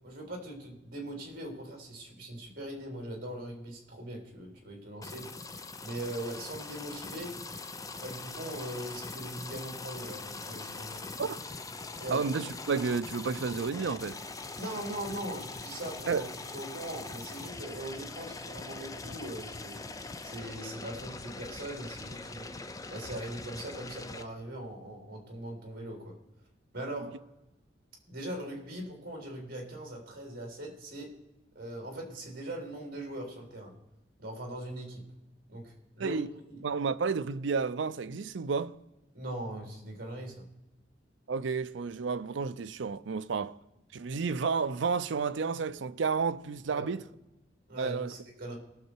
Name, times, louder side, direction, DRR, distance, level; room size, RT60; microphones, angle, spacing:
voice 1, 0.0-5.3 5.8-7.4 8.0-11.1 12.0-12.2 14.6-16.3 16.5-19.8 20.2-22.5 22.9-26.1 26.7-27.2 28.1-31.2 31.5-33.7 34.2-35.0 35.5-36.2 36.5-36.6 39.1-40.4 46.7-46.9 47.7-48.6, right 1 dB, 55° right, 3.4 m, -40 dB
sound 1, 5.0-24.2, left 3 dB, 20° left, 0.6 m, -42 dB
voice 2, 12.1-14.2 16.1-16.3 36.0-36.3 36.6-38.8 41.3-43.6 43.9-47.0 47.8-48.1, right 5 dB, 80° right, 0.5 m, -31 dB
19.5 x 6.6 x 4.5 m
head